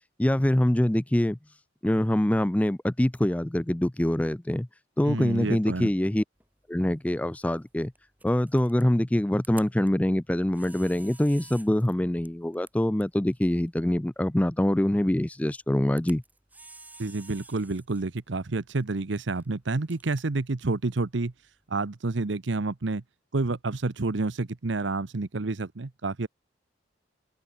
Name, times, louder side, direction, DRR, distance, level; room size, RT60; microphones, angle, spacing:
voice 1, 0.2-1.4 1.8-4.7 5.0-6.2 6.7-7.9 8.2-16.2, left 1 dB, 10° left, 0.4 m, -24 dB
voice 2, 5.1-5.9 17.0-21.3 21.7-23.0 23.3-26.3, right 3 dB, 70° right, 0.9 m, -29 dB
Camera, 6.4-21.8, right 3 dB, 10° right, 5.3 m, -54 dB
head